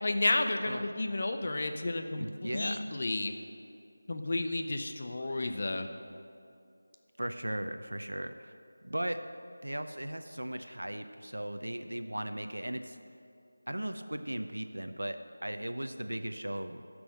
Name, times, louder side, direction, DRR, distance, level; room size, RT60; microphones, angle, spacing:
voice 1, 0.0-3.3 4.1-5.9, left 2 dB, 45° left, 6 dB, 0.7 m, -32 dB
voice 2, 2.1-2.9 7.2-8.5 8.8-9.2 9.6-13.0 13.7-16.8, right 1 dB, 80° right, 8 dB, 0.6 m, -37 dB
11.0 x 6.2 x 6.4 m, 2.5 s
figure-of-eight pair, 165°, 0 cm